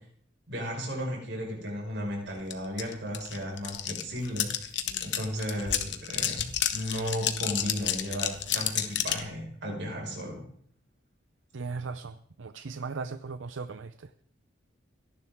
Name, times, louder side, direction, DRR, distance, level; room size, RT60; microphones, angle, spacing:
voice 1, 0.5-4.7 5.0-10.4, equal, 65° right, -1 dB, 5.2 m, -35 dB
sound 1, 2.5-2.6 2.8-9.3, left 10 dB, 70° left, 1.3 m, -30 dB
voice 2, 11.5-14.2, right 4 dB, 85° right, 12 dB, 0.6 m, -38 dB
29.5 x 11.0 x 3.6 m, 0.63 s
head